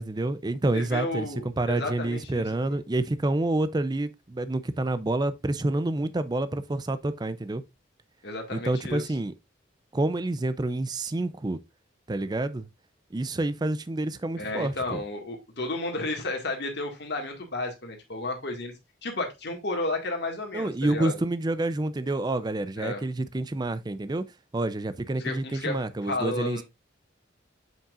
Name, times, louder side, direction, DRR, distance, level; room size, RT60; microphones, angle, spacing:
voice 1, 0.0-7.6 8.5-9.3 9.9-11.6 12.1-12.7 13.1-15.0 20.5-24.2 24.5-26.6, right 2 dB, 20° right, 0.4 m, -28 dB
voice 2, 0.7-2.8 8.2-9.0 14.4-18.7 19.0-21.1 22.8-23.0 25.2-26.6, left 2 dB, 60° left, 1.8 m, -32 dB
7.4 x 5.7 x 2.4 m
head